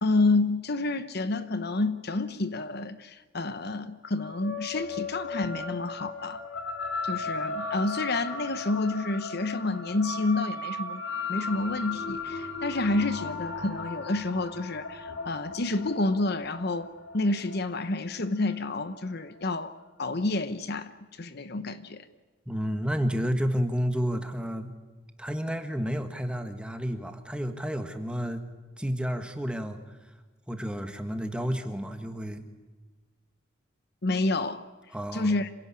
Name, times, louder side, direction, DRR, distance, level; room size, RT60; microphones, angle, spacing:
voice 1, 0.0-6.4 7.0-11.0 11.3-19.7 20.0-20.9 21.2-22.1 34.0-34.6 35.1-35.5, left 2 dB, 50° left, 1.0 m, -29 dB
sound 1, 4.2-18.9, left 3 dB, 75° left, 3.2 m, -36 dB
voice 2, 22.5-24.7 25.2-28.4 28.8-29.8 30.5-32.5 34.9-35.4, equal, 5° right, 1.5 m, -31 dB
26.5 x 17.0 x 8.6 m
head